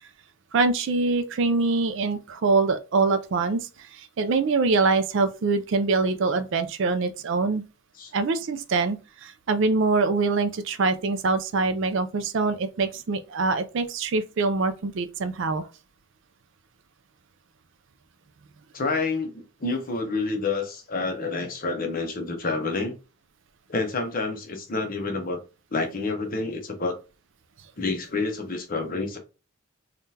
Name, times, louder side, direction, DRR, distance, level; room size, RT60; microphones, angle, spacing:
voice 1, 0.5-7.6 8.1-15.7, right 3 dB, 55° right, 0.4 m, -24 dB
voice 2, 18.7-23.0 23.7-25.4 25.7-27.0 27.8-29.2, left 3 dB, 40° left, 0.7 m, -28 dB
3.6 x 2.3 x 2.7 m
head